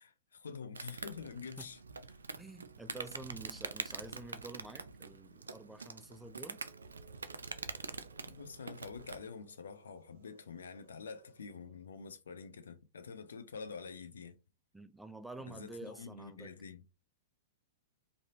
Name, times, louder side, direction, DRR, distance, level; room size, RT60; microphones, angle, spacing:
voice 1, 0.0-1.8 8.3-14.4 15.5-16.8, left 5 dB, 80° left, 0.5 m, -47 dB
Insect, 0.7-9.3, right 4 dB, 90° right, 0.3 m, -45 dB
voice 2, 2.4-6.6 14.7-16.5, right 2 dB, 5° right, 0.3 m, -49 dB
Moaning of the Dead A, 6.3-11.9, right 5 dB, 65° right, 0.8 m, -64 dB
3.2 x 2.6 x 2.5 m
hypercardioid pair, 115°, 0 cm